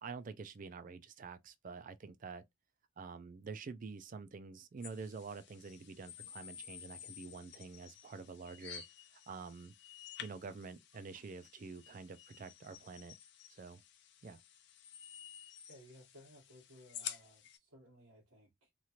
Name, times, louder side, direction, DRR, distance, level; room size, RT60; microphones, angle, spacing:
voice 1, 0.0-2.4 3.0-8.8 9.3-9.7 10.2-13.1 13.6-13.8 14.2-14.4, right 4 dB, 40° right, 0.3 m, -47 dB
sound 1, 4.8-17.6, left 10 dB, 50° left, 0.5 m, -52 dB
voice 2, 15.7-18.7, equal, 90° right, 1.2 m, -59 dB
3.0 x 2.4 x 2.8 m
head